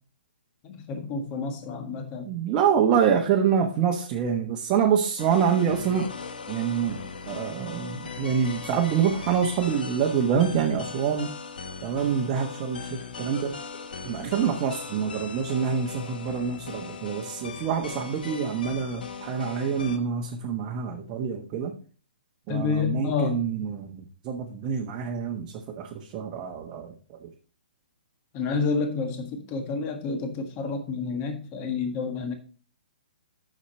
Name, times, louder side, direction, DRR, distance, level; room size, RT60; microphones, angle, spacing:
voice 1, 0.6-2.3 22.5-23.4 28.3-32.3, left 5 dB, 30° left, 6 dB, 1.6 m, -29 dB
voice 2, 2.2-6.1 6.5-11.3 11.8-13.6 14.0-21.7 22.5-26.9 27.2-27.3, right 7 dB, 30° right, 1 dB, 1.2 m, -26 dB
sound 1, 5.2-20.0, left 5 dB, 65° left, 1.1 m, -39 dB
8.4 x 6.5 x 4.3 m, 0.40 s
figure-of-eight pair, 130°, 5 cm